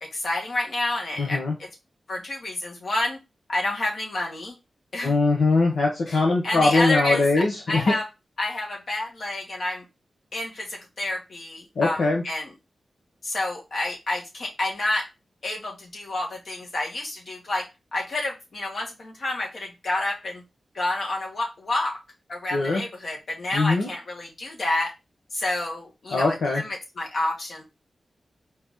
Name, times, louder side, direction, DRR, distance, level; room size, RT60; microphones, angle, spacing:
voice 1, 0.0-1.7 2.1-3.2 3.5-4.6 4.9-5.1 6.1-8.1 8.4-9.9 10.3-12.5 13.2-15.1 15.4-20.4 20.7-22.0 22.3-24.9 25.3-27.6, left 2 dB, 60° left, -1 dB, 1.7 m, -29 dB
voice 2, 1.2-1.5 5.0-7.8 11.8-12.2 22.5-22.8 23.5-23.9 26.1-26.6, left 3 dB, 80° left, -1 dB, 1.0 m, -21 dB
4.7 x 2.9 x 3.6 m, 0.24 s
wide cardioid pair, 85°, 0 cm